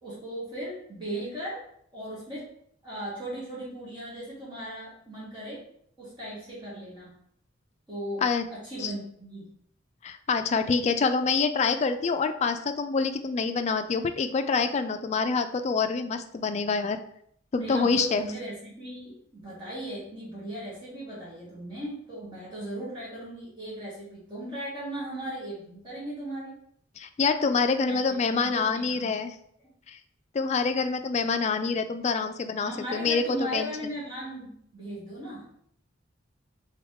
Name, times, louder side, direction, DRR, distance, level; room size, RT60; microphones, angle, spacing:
voice 1, 0.0-1.6 1.9-2.5 2.8-5.6 6.0-7.1 7.9-8.2 8.5-9.5 17.6-26.6 27.8-29.3 32.6-35.4, right 1 dB, 25° right, -8 dB, 1.4 m, -37 dB
voice 2, 10.0-17.0 17.5-18.2 27.0-29.3 29.9-30.0 30.3-33.9, left 4 dB, 35° left, 9 dB, 0.3 m, -26 dB
3.6 x 3.0 x 3.5 m, 0.68 s
head